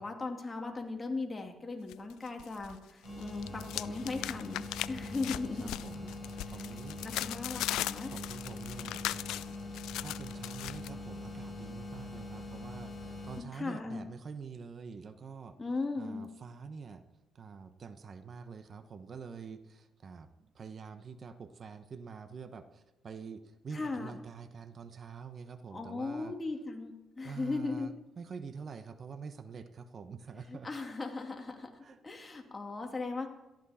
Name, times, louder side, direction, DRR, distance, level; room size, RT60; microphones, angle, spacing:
voice 1, 0.0-5.7 7.0-8.1 13.4-14.0 15.6-16.2 23.7-24.2 25.7-27.9 30.5-33.3, left 3 dB, 25° left, 2 dB, 2.5 m, -38 dB
sound 1, 1.9-2.8 3.1-10.9, left 14 dB, 90° left, 0.4 m, -39 dB
sound 2, 3.0-13.4, left 2 dB, 10° left, 7.0 m, -43 dB
voice 2, 4.9-7.0 8.0-9.6 9.9-15.6 16.0-17.0 17.3-26.3 27.2-30.9 31.8-32.0, right 5 dB, 50° right, 10 dB, 1.2 m, -46 dB
18.0 x 13.5 x 4.4 m, 1.0 s
cardioid pair, 90°, 0 cm